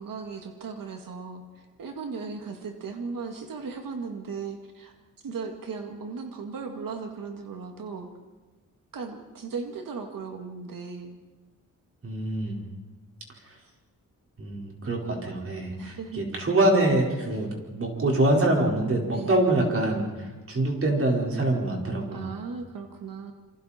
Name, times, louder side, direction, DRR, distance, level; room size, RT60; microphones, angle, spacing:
voice 1, 0.0-5.0 5.2-8.1 8.9-11.2 15.8-16.3 19.1-19.4 22.1-23.3, right 5 dB, 80° right, 4 dB, 2.1 m, -37 dB
voice 2, 12.0-12.6 14.4-22.3, right 1 dB, 40° right, -1 dB, 4.8 m, -25 dB
27.5 x 27.0 x 4.4 m, 1.3 s
wide cardioid pair, 165°, 33 cm